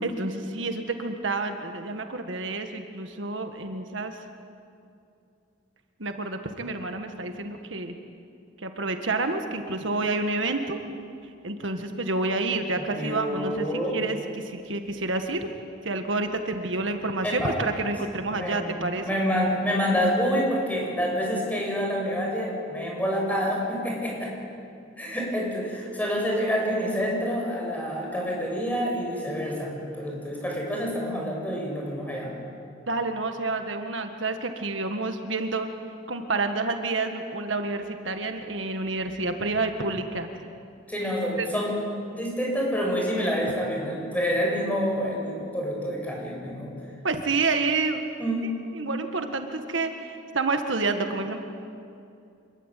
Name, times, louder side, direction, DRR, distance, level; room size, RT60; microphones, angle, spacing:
voice 1, 0.0-4.2 6.0-8.0 8.6-10.8 11.4-15.5 15.8-19.2 32.9-35.7 36.1-40.3 41.4-41.6 47.0-48.1 48.7-51.4, right 3 dB, 70° right, 6 dB, 1.7 m, -29 dB
voice 2, 12.9-14.0 17.2-17.5 18.3-18.7 19.0-24.3 25.0-32.3 40.9-41.7 42.1-46.8 48.2-48.5, equal, 10° left, -2 dB, 7.7 m, -27 dB
26.5 x 22.0 x 9.3 m, 2.6 s
head